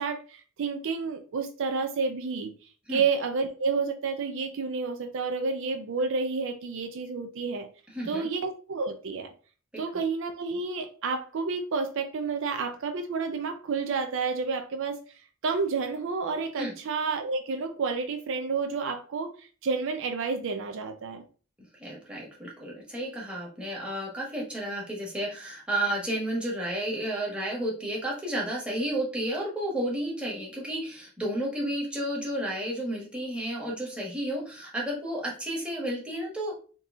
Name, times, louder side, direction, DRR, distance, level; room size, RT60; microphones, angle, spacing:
voice 1, 0.0-2.5 2.9-7.7 8.1-9.3 9.8-15.0 15.4-21.2, right 4 dB, 65° right, 7 dB, 0.4 m, -30 dB
voice 2, 7.9-8.3 16.6-16.7 21.8-36.6, right 1 dB, 5° right, -4 dB, 1.2 m, -32 dB
3.8 x 2.7 x 3.6 m, 0.39 s
head